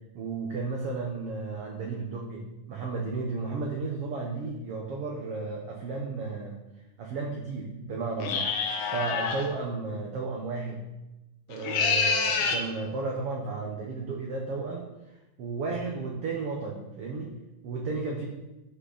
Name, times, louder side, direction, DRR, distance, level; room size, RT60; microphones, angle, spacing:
voice 1, 0.1-6.6 7.0-8.5 8.9-10.9 11.5-17.4 17.6-18.3, right 4 dB, 90° right, -1 dB, 1.3 m, -33 dB
sound 1, 8.2-9.5 11.5-12.7, left 5 dB, 80° left, 2.8 m, -27 dB
11.5 x 6.0 x 4.1 m, 0.99 s
omnidirectional pair, 4.2 m